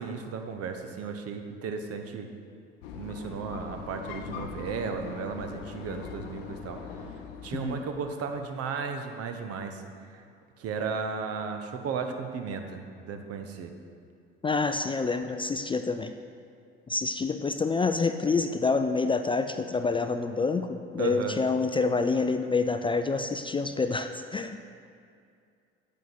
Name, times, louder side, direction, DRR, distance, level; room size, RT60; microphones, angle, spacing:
voice 1, 0.0-2.3 2.9-6.8 7.4-9.8 10.1-10.2 10.6-12.8 13.0-13.7 21.0-21.4, right 5 dB, 55° right, 6 dB, 1.0 m, -34 dB
sound 1, 2.8-8.4, left 6 dB, 75° left, 0.7 m, -41 dB
voice 2, 14.4-16.1 16.9-24.6, left 4 dB, 20° left, 8 dB, 0.4 m, -27 dB
9.2 x 7.2 x 4.1 m, 2.4 s
hypercardioid pair, 55°, 29 cm